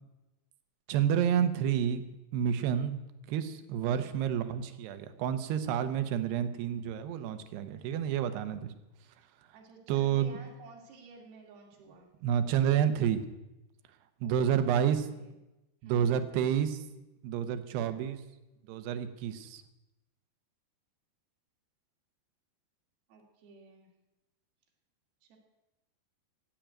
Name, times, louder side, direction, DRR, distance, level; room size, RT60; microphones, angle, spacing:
voice 1, 0.9-2.0 2.3-3.0 3.3-8.7 9.9-10.4 12.2-13.2 14.2-15.1 15.8-16.8 17.2-18.2 18.7-19.6, right 9 dB, 80° right, 10 dB, 3.0 m, -29 dB
voice 2, 3.8-4.2 9.5-12.1 14.2-15.3 15.8-16.2 17.7-18.1 23.1-23.9 25.2-25.4, right 4 dB, 65° right, 0 dB, 4.2 m, -53 dB
15.5 x 8.8 x 9.2 m, 0.99 s
omnidirectional pair, 4.9 m